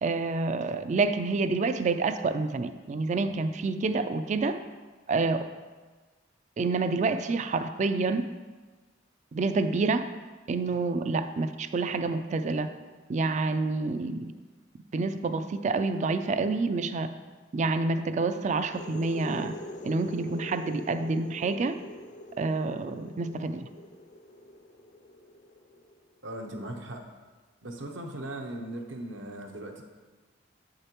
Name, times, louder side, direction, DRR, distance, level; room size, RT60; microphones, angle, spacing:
voice 1, 0.0-4.6 5.1-5.5 6.6-8.3 9.3-10.1 10.5-12.7 13.1-14.3 14.9-17.1 17.5-19.5 19.8-21.8 22.4-23.7, right 3 dB, 35° right, 10 dB, 0.3 m, -28 dB
sound 1, 18.6-26.1, left 1 dB, 40° left, 0.4 m, -44 dB
voice 2, 26.2-27.0 27.6-29.8, right 1 dB, 70° right, 3 dB, 0.8 m, -38 dB
8.1 x 6.5 x 3.0 m, 1.4 s
head